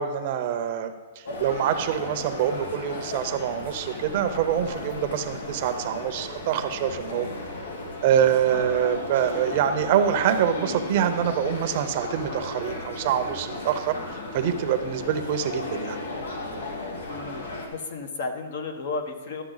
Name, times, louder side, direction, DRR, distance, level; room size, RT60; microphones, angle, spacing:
voice 1, 0.0-7.3 8.0-14.0 14.3-16.0, right 9 dB, 45° right, 8 dB, 0.7 m, -25 dB
sound 1, 1.3-17.7, left 2 dB, 90° left, 1.5 m, -35 dB
voice 2, 17.1-19.4, left 3 dB, 65° left, 6 dB, 1.1 m, -33 dB
12.0 x 6.7 x 3.9 m, 1.4 s
hypercardioid pair, 160°, 0 cm